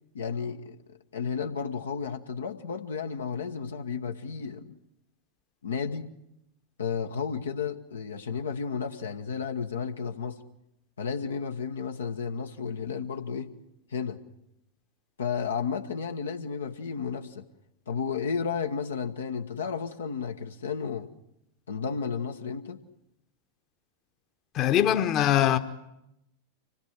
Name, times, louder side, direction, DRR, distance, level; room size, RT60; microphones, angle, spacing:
voice 1, 0.1-4.8 5.6-6.1 6.8-10.4 11.0-13.5 13.9-14.2 15.2-17.4 17.9-21.1 21.7-22.8, left 6 dB, 70° left, 1.1 m, -32 dB
voice 2, 24.5-25.6, left 11 dB, 35° left, 1.2 m, -22 dB
25.5 x 18.0 x 8.1 m
figure-of-eight pair, 90°, 0 cm